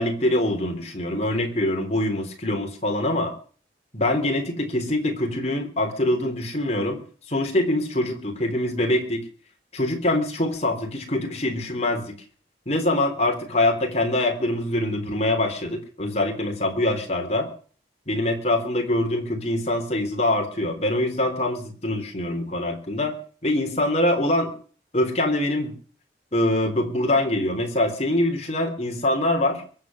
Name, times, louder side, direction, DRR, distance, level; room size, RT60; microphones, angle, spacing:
voice 1, 0.0-3.3 3.9-7.0 7.3-9.2 9.7-12.2 12.7-17.5 18.1-23.2 23.4-24.5 24.9-25.7 26.3-29.6, left 1 dB, 40° left, 3 dB, 3.6 m, -24 dB
23.0 x 7.9 x 6.3 m, 0.43 s
head